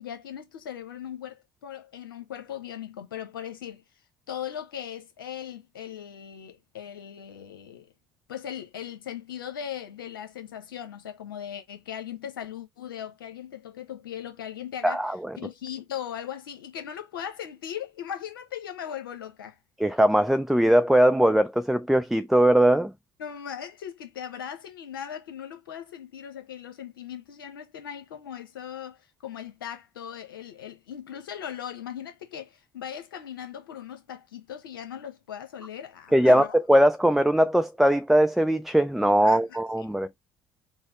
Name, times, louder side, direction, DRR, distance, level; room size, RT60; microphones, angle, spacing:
voice 1, 0.0-3.8 4.3-7.9 8.3-15.1 15.4-19.6 23.2-36.5 39.2-40.0, left 9 dB, 85° left, 0.9 m, -39 dB
voice 2, 14.8-15.2 19.8-22.9 36.1-40.1, right 1 dB, ahead, 0.4 m, -20 dB
4.1 x 2.1 x 4.2 m
hypercardioid pair, 60°, 11 cm